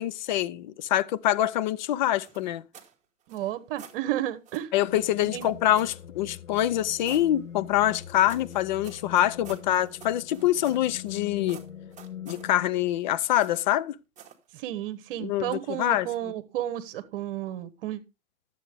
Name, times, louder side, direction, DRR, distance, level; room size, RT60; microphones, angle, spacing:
voice 1, 0.0-2.6 4.7-11.6 12.3-14.0 15.2-16.3, left 13 dB, 35° left, 0.5 m, -25 dB
sound 1, 2.2-2.9 3.3-4.0 4.5-4.7 5.4-6.0 6.6-7.3 7.8-11.2 11.5-12.5 13.4-13.8 14.2-14.4, right 8 dB, 20° right, 1.4 m, -49 dB
voice 2, 3.3-4.7 5.2-5.5 14.5-18.0, right 13 dB, 45° right, 1.2 m, -32 dB
sound 2, 4.9-12.9, left 9 dB, 90° left, 1.1 m, -43 dB
11.5 x 7.6 x 3.4 m
figure-of-eight pair, 110°, 39 cm